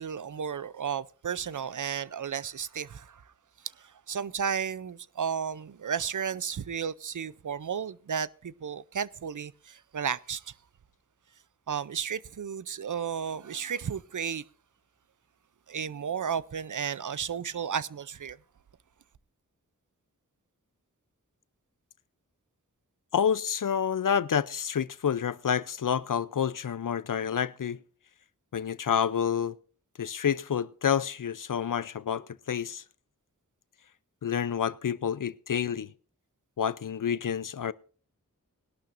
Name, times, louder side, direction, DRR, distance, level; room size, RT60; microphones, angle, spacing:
voice 1, 0.0-3.2 3.6-10.5 11.7-14.4 15.7-18.4, right 7 dB, 65° right, 0.5 m, -33 dB
voice 2, 23.1-27.8 28.5-29.6 30.0-32.8 34.2-35.9 36.6-37.7, left 8 dB, 70° left, 0.6 m, -28 dB
20.0 x 12.0 x 2.6 m
wide cardioid pair, 70°, 33 cm